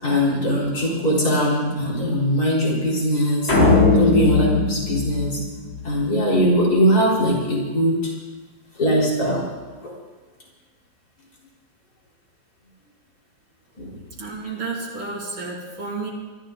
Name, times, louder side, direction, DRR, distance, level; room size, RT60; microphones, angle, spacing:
voice 1, 0.0-3.5 3.9-5.4 5.8-8.1 8.8-9.4 9.8-9.9 13.8-13.9, equal, 50° left, -5 dB, 4.7 m, -21 dB
sound 1, 3.5-5.9, left 3 dB, 80° left, 3.9 m, -19 dB
voice 2, 14.2-16.1, right 3 dB, 75° right, -5 dB, 3.5 m, -31 dB
23.5 x 13.0 x 4.0 m, 1.3 s
omnidirectional pair, 2.2 m